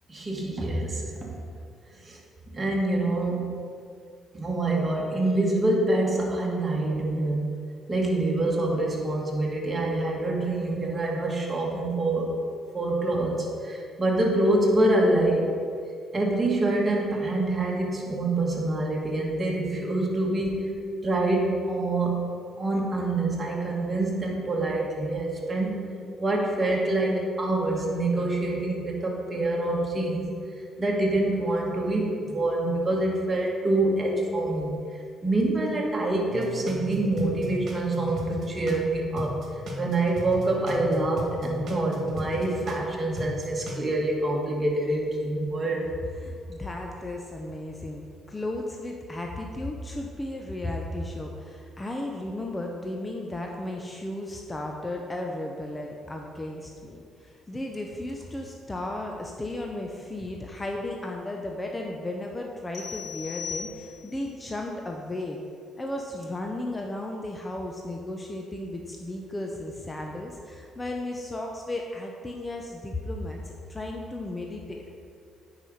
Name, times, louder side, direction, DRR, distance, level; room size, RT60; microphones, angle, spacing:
voice 1, 0.1-1.4 2.0-2.2 2.5-3.6 4.3-7.5 7.9-12.3 12.7-15.6 16.1-20.7 21.0-22.2 22.6-25.9 26.2-30.3 30.8-39.4 39.7-45.9, right 2 dB, 25° right, -2 dB, 2.0 m, -26 dB
sound 1, 36.3-38.9 39.2-42.9 43.2-43.8, equal, 50° right, 1.8 m, -36 dB
voice 2, 46.2-65.4 65.8-74.8, left 1 dB, 15° left, 1 dB, 0.8 m, -35 dB
sound 2, 62.7-64.3, left 7 dB, 65° left, 1.7 m, -38 dB
9.1 x 4.9 x 5.6 m, 2.3 s
cardioid pair, 80°, 0 cm